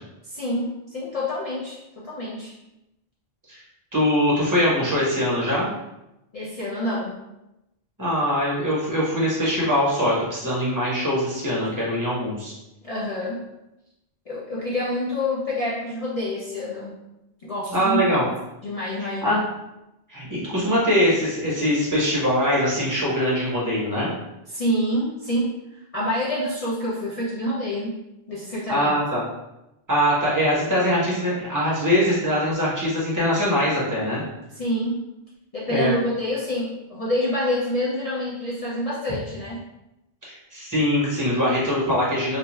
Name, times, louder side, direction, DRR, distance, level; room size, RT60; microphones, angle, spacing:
voice 1, 0.2-2.5 6.3-7.2 12.8-13.5 14.3-17.0 17.4-18.1 18.6-19.4 24.5-28.0 28.3-28.9 34.5-35.0 35.5-39.7, left 1 dB, 50° left, -7 dB, 0.4 m, -27 dB
voice 2, 3.9-5.7 8.0-12.5 17.7-18.3 19.2-19.4 20.1-24.1 28.7-29.2 29.9-34.2 35.7-35.9 40.2-42.4, equal, 20° right, -6 dB, 0.9 m, -22 dB
2.5 x 2.3 x 3.0 m, 0.91 s
omnidirectional pair, 1.1 m